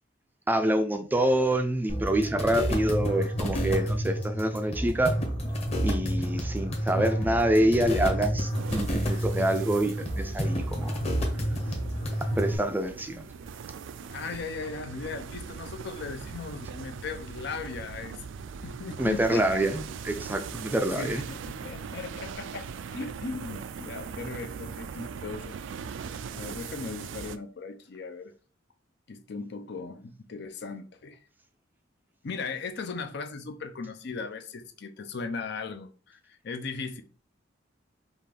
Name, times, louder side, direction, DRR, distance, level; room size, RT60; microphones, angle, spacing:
voice 1, 0.5-5.2 5.8-11.0 12.4-13.2 19.0-19.8 20.0-21.2, right 1 dB, 10° right, 0.4 m, -26 dB
sound 1, 1.9-12.5, equal, 35° left, 1.1 m, -29 dB
voice 2, 6.9-7.3 14.1-18.2 18.6-19.6 21.0-25.6 26.3-28.3 29.1-31.2 32.2-37.0, left 4 dB, 60° left, 0.6 m, -38 dB
sound 2, 8.5-27.4, right 6 dB, 80° right, 0.4 m, -40 dB
5.5 x 2.4 x 3.3 m
head